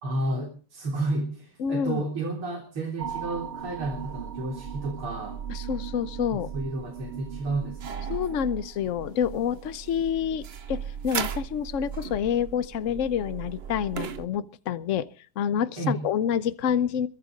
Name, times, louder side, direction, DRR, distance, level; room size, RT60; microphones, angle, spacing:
voice 1, 0.0-5.4 6.5-8.1 15.8-16.0, right 2 dB, 90° right, 1 dB, 4.5 m, -31 dB
voice 2, 1.6-2.1 5.5-6.5 8.1-15.1 15.4-17.1, left 8 dB, 55° left, 14 dB, 0.9 m, -28 dB
sound 1, 3.0-14.3, right 7 dB, 55° right, 0.7 m, -37 dB
22.0 x 9.6 x 5.2 m, 0.40 s
omnidirectional pair, 2.3 m